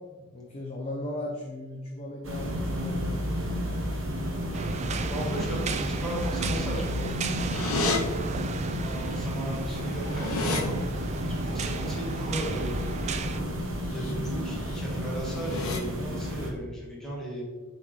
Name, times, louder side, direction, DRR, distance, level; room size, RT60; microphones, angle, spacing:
voice 1, 0.3-3.4 8.6-8.7 11.7-11.8, left 1 dB, 30° left, -3 dB, 0.9 m, -38 dB
sound 1, 2.2-16.5, equal, 65° right, 1.1 m, -32 dB
sound 2, 4.5-13.4, right 4 dB, 30° right, 0.3 m, -35 dB
voice 2, 5.0-7.1 8.8-10.9 11.3-13.0 13.8-17.4, right 1 dB, 5° left, -6 dB, 1.7 m, -36 dB
sound 3, 7.5-8.0 9.2-9.3 9.5-10.6 13.8-14.1 14.5-14.8 15.3-15.8, left 3 dB, 80° left, 0.9 m, -31 dB
7.1 x 4.2 x 3.2 m, 1.3 s
head